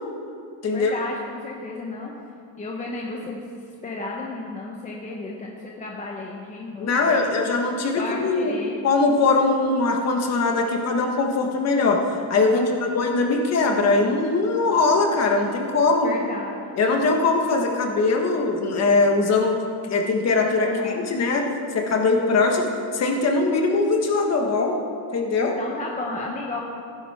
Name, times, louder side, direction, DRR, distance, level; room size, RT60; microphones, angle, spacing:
voice 1, 0.7-2.1 2.6-3.5 3.8-7.3 8.0-8.8 12.5-12.9 16.0-16.8 20.6-21.2 25.4-26.6, left 2 dB, 15° left, -2 dB, 0.8 m, -33 dB
voice 2, 6.8-8.5 8.8-12.0 12.3-16.1 16.8-19.6 19.9-21.5 21.7-22.7 22.9-24.8 25.1-25.6, left 3 dB, 30° left, 2 dB, 1.4 m, -21 dB
15.5 x 10.5 x 4.3 m, 2.6 s
cardioid pair, 180°, 49 cm